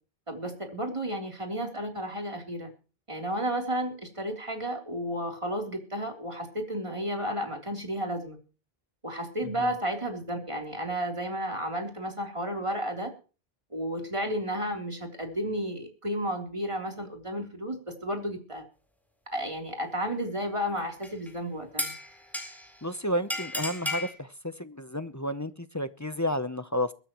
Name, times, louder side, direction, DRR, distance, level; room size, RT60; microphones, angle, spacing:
voice 1, 0.3-2.7 3.1-8.4 9.0-13.1 13.7-18.7 19.3-21.9, equal, 30° right, 2 dB, 3.6 m, -32 dB
sound 1, 21.0-21.3 21.8-22.8 23.3-24.1, left 1 dB, ahead, 4.1 m, -33 dB
voice 2, 22.8-26.9, left 1 dB, 20° left, 11 dB, 0.7 m, -31 dB
22.5 x 13.0 x 3.1 m, 0.36 s
omnidirectional pair, 1.0 m